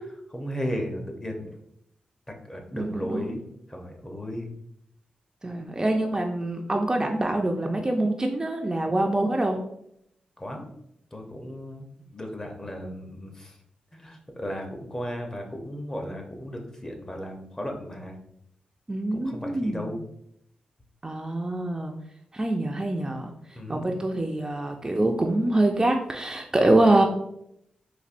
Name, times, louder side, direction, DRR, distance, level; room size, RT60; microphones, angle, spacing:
voice 1, 0.3-1.6 2.3-4.6 10.4-10.7 11.1-11.8 12.1-13.6 13.9-18.2 19.1-20.1 23.5-23.8, equal, 20° left, 2 dB, 0.7 m, -35 dB
voice 2, 2.7-3.3 5.4-9.6 18.9-19.9 21.0-21.9 22.3-23.3 23.7-27.1, right 1 dB, 25° right, 2 dB, 0.4 m, -25 dB
4.1 x 2.6 x 2.5 m, 0.74 s
cardioid pair, 70°, 3 cm